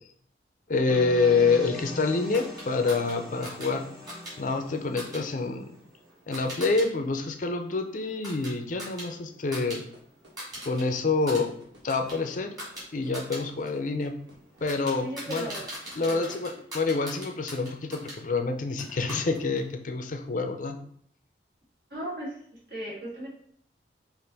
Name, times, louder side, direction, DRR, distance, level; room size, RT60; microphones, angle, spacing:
voice 1, 0.7-3.8 4.4-5.7 6.3-9.8 10.7-11.5 11.8-12.5 12.9-14.1 14.6-15.5 16.0-20.8, left 4 dB, 45° left, 5 dB, 0.5 m, -27 dB
sound 1, 0.9-5.8, left 1 dB, ahead, 0.7 m, -42 dB
sound 2, 2.3-6.9 7.2-9.8 10.1-10.8 11.1-18.2 18.8-19.7, equal, 20° right, 2.0 m, -42 dB
sound 3, 9.9-16.2, equal, 90° right, 1.4 m, -53 dB
voice 2, 15.0-15.7 16.0-16.4 21.9-22.4 22.7-23.3, equal, 65° right, -5 dB, 1.9 m, -37 dB
5.3 x 2.5 x 4.0 m, 0.63 s
head